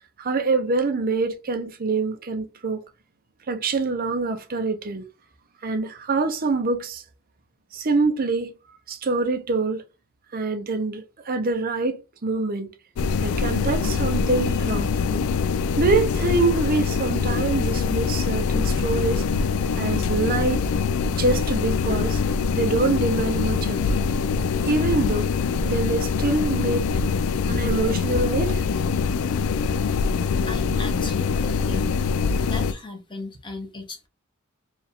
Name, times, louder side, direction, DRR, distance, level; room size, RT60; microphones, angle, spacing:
voice 1, 0.2-2.8 3.5-5.0 5.6-7.0 7.7-8.5 8.9-9.8 10.3-12.7 13.2-15.2 15.8-19.2 19.7-20.6 21.1-22.2 22.5-23.8 24.6-25.3 25.6-26.9 27.4-28.7, right 3 dB, 45° right, 0.6 m, -25 dB
sound 1, 13.0-32.7, left 5 dB, 70° left, 0.3 m, -24 dB
voice 2, 30.4-32.0 32.4-34.1, left 3 dB, 20° left, 0.9 m, -37 dB
4.4 x 2.4 x 3.4 m
head